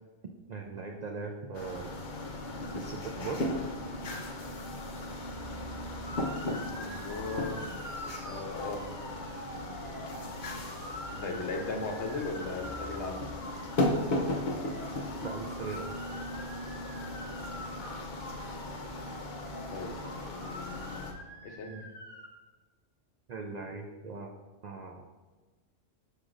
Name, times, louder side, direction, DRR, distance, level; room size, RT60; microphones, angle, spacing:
voice 1, 0.5-1.9 2.7-3.5 11.2-11.4 15.2-15.9 21.7-21.9 23.3-24.3 24.6-25.0, right 4 dB, 80° right, 2 dB, 0.3 m, -40 dB
sound 1, 1.5-21.1, left 1 dB, 45° left, 0.7 m, -36 dB
voice 2, 5.9-7.7 8.1-8.8 11.2-13.2 19.7-21.8, left 3 dB, 65° left, 3 dB, 1.0 m, -38 dB
Motor vehicle (road) / Siren, 6.1-22.3, equal, 10° right, 0.9 m, -46 dB
6.5 x 6.2 x 2.5 m, 1.3 s
omnidirectional pair, 1.3 m